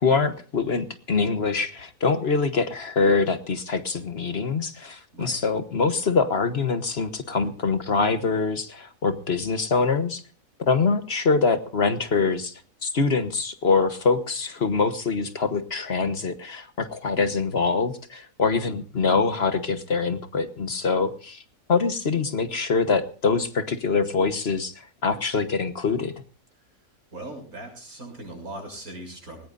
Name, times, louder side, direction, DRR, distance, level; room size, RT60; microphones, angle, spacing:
voice 1, 0.0-10.2 10.6-21.4 21.7-26.1, left 4 dB, 50° left, 10 dB, 1.3 m, -24 dB
voice 2, 27.1-29.5, right 1 dB, 85° right, 3 dB, 7.3 m, -39 dB
20.0 x 19.5 x 2.6 m, 0.40 s
omnidirectional pair, 1.5 m